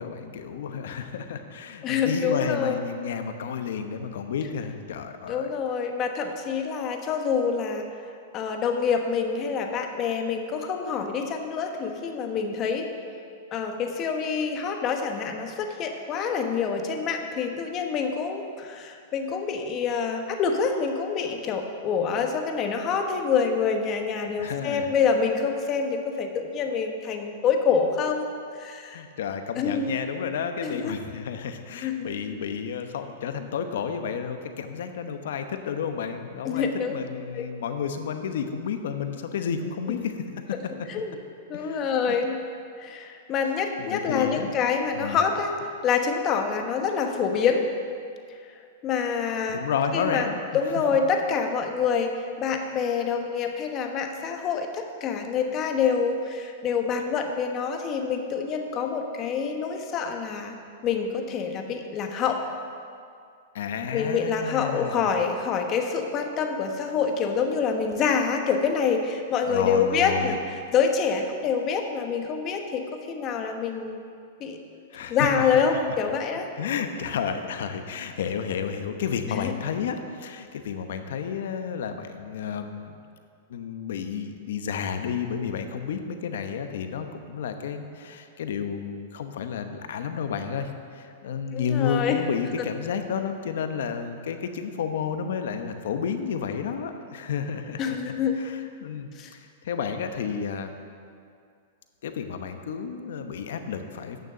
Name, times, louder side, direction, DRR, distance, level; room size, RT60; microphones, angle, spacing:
voice 1, 0.0-5.5 24.4-24.9 28.9-40.6 41.5-42.2 43.8-44.5 44.9-45.2 49.5-50.4 63.5-65.1 69.5-70.4 74.9-75.6 76.6-82.9 83.5-98.0 98.4-100.7 102.0-104.2, left 7 dB, 75° left, 7 dB, 0.9 m, -31 dB
voice 2, 1.8-2.8 5.3-7.9 8.3-12.9 13.5-28.3 28.5-29.0 29.6-30.0 30.6-31.0 31.8-32.1 36.4-37.0 37.3-37.5 39.9-40.1 40.9-41.1 41.5-42.4 42.8-45.6 45.8-47.7 48.3-48.4 48.8-49.6 49.9-60.6 60.8-62.5 63.9-70.4 70.7-74.1 74.4-74.6 75.1-76.5 79.3-79.5 91.5-92.2 92.6-92.7 97.8-98.3 99.2-99.3, left 6 dB, 35° left, 4 dB, 1.1 m, -26 dB
9.4 x 6.5 x 6.7 m, 2.3 s
hypercardioid pair, 135°, 0 cm